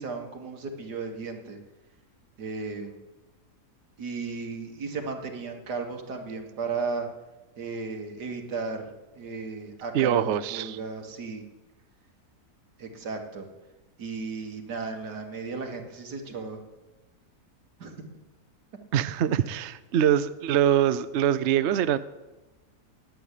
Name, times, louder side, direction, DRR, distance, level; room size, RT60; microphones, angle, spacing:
voice 1, 0.0-1.6 2.4-3.1 4.0-7.1 7.6-11.4 12.8-13.5 14.0-16.6 17.8-18.0, right 4 dB, 80° right, 3 dB, 2.3 m, -35 dB
voice 2, 9.9-10.8 18.9-22.0, right 10 dB, 65° right, 13 dB, 0.7 m, -24 dB
9.2 x 9.1 x 10.0 m, 1.1 s
omnidirectional pair, 1.7 m